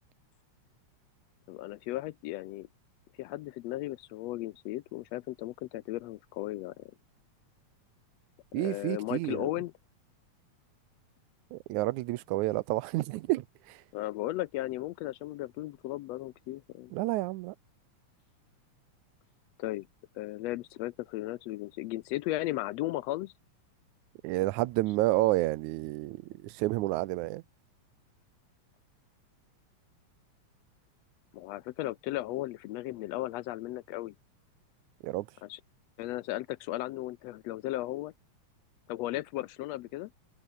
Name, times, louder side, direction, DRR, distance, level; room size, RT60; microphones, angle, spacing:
voice 1, 1.5-2.7 3.2-6.9 8.5-9.7 13.9-16.9 19.6-19.9 20.2-23.3 31.3-34.1 35.4-35.6 36.0-38.1 38.9-40.1, left 16 dB, 80° left, 1.6 m, -36 dB
voice 2, 8.5-9.5 11.5-13.8 16.9-17.5 24.2-27.4 35.0-35.3, right 19 dB, 90° right, 2.1 m, -30 dB
omnidirectional pair, 3.3 m